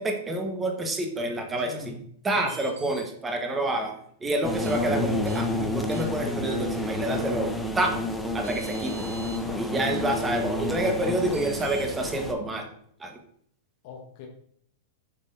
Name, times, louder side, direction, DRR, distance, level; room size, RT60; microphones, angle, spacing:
voice 1, 0.0-2.0 2.2-3.9 4.2-7.9 8.3-8.9 9.6-12.7 13.0-13.2, right 1 dB, 15° right, 3 dB, 1.3 m, -28 dB
voice 2, 1.6-2.0 2.3-2.5 9.4-9.6 13.8-14.3, left 5 dB, 50° left, 1 dB, 1.1 m, -41 dB
sound 1, 2.4-3.0 4.6-4.8 5.2-5.4 5.9-6.3 8.0-8.1 8.4-9.4 11.3-11.9, right 2 dB, 70° right, 2.5 m, -44 dB
sound 2, 4.4-12.3, left 1 dB, 5° left, 0.8 m, -30 dB
7.1 x 5.5 x 2.7 m, 0.65 s
hypercardioid pair, 100°, 0 cm